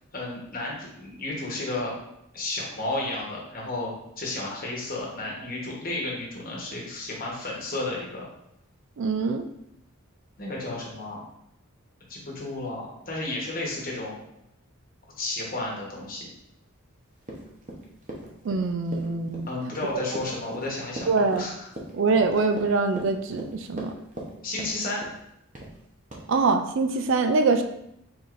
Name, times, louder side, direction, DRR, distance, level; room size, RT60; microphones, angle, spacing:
voice 1, 0.1-1.9 2.3-8.2 10.4-11.2 12.1-14.1 15.2-16.3 19.5-21.5 24.4-25.0, left 2 dB, 40° left, -3 dB, 1.1 m, -32 dB
voice 2, 9.0-9.4 18.4-19.5 19.9-20.1 21.1-21.4 21.9-23.9 26.3-27.6, right 4 dB, 60° right, 8 dB, 0.3 m, -24 dB
Run, 17.2-24.3 24.6-25.2 25.5-25.8 26.1-26.2, right 1 dB, 35° right, 0.8 m, -39 dB
4.7 x 4.0 x 2.5 m, 0.79 s
head